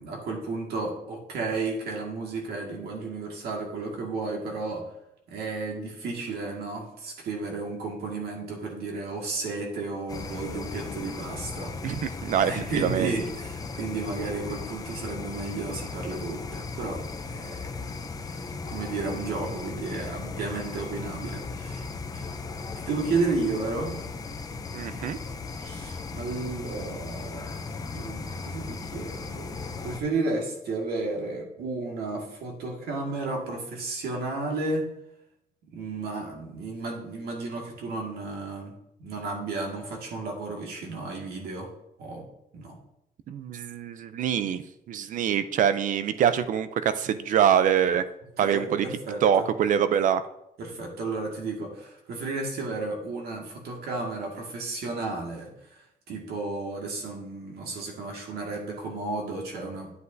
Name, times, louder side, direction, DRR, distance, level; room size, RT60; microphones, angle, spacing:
voice 1, 0.0-4.9 5.3-12.0 12.4-17.8 18.2-18.4 18.7-21.8 22.1-22.3 22.9-24.0 25.6-34.9 35.7-38.7 39.0-41.7 42.0-42.3 42.5-42.8 48.4-49.5 50.6-59.9, right 3 dB, 70° right, 0 dB, 1.9 m, -33 dB
sound 1, 10.1-30.0, left 4 dB, 20° left, 0.5 m, -37 dB
voice 2, 11.8-13.1 24.7-25.2 43.3-44.6 44.9-48.0 48.4-48.9 49.2-50.2, right 9 dB, 50° right, 12 dB, 0.5 m, -24 dB
9.8 x 7.9 x 2.7 m, 0.83 s
cardioid pair, 180°, 17 cm